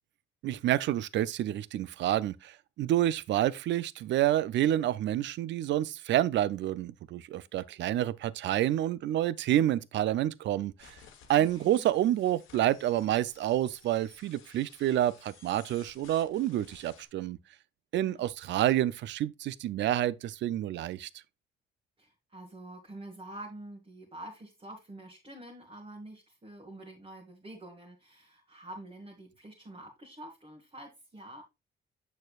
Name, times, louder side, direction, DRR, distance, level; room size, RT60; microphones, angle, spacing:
voice 1, 0.4-10.9 11.3-17.4 17.9-21.1, right 12 dB, 65° right, 0.4 m, -28 dB
sound 1, 10.8-17.1, left 7 dB, 90° left, 1.2 m, -57 dB
voice 2, 11.4-11.9 18.0-18.2 22.0-31.4, right 1 dB, 30° right, 1.6 m, -47 dB
6.5 x 6.5 x 2.4 m
cardioid pair, 90°, 20 cm